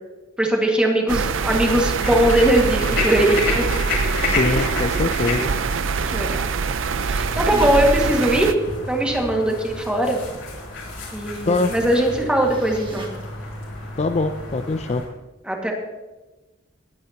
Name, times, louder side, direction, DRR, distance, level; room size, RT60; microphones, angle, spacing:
voice 1, 0.4-4.1 6.1-6.4 7.1-8.5 8.9-10.2 11.1-13.1 15.4-15.7, right 1 dB, 5° right, 0 dB, 1.9 m, -20 dB
sound 1, 1.1-8.5, right 5 dB, 70° right, 0.5 m, -24 dB
sound 2, 2.0-15.1, left 2 dB, 80° left, 4.5 m, -31 dB
voice 2, 4.2-5.5 11.5-11.7 14.0-15.0, left 3 dB, 35° left, 8 dB, 0.4 m, -23 dB
sound 3, 7.5-8.2 8.7-8.8 12.5-13.1, right 2 dB, 25° right, 1.6 m, -36 dB
20.5 x 9.3 x 2.9 m, 1.1 s
head